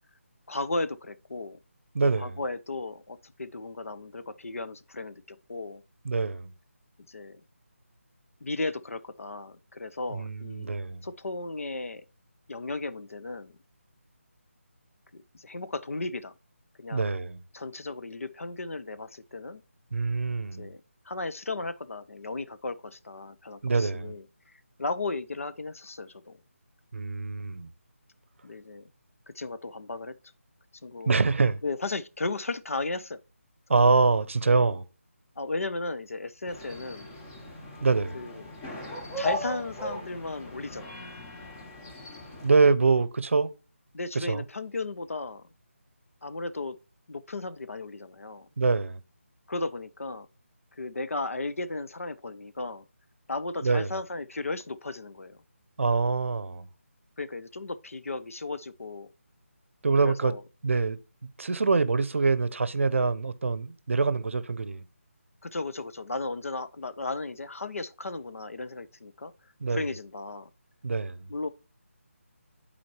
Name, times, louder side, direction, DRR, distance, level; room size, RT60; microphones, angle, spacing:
voice 1, 0.5-1.6 2.2-5.8 7.1-7.4 8.4-10.8 11.0-12.0 12.5-13.6 15.1-16.3 16.8-17.1 17.5-19.6 20.6-24.2 24.8-26.4 28.4-28.9 29.3-30.1 30.8-31.2 31.6-33.2 33.7-33.9 35.4-37.1 38.1-38.4 39.2-41.0 43.9-45.4 46.2-46.8 47.1-48.5 49.5-50.3 50.7-52.9 53.3-55.4 57.2-59.1 60.0-60.4 65.4-69.3 69.7-70.5 71.3-71.5, left 3 dB, 75° left, 0.6 m, -35 dB
voice 2, 1.9-2.4 6.0-6.5 10.1-11.1 16.9-17.4 19.9-20.7 23.6-24.1 26.9-27.7 31.1-31.6 33.7-34.8 37.8-38.2 42.4-43.5 44.1-44.4 48.6-49.0 53.6-53.9 55.8-56.7 59.8-60.3 60.6-61.0 61.4-64.8 69.6-69.8 70.8-71.3, right 4 dB, 65° right, 0.6 m, -25 dB
sound 1, 36.5-42.5, left 1 dB, 15° left, 0.7 m, -38 dB
10.5 x 4.2 x 3.0 m
figure-of-eight pair, 165°, 7 cm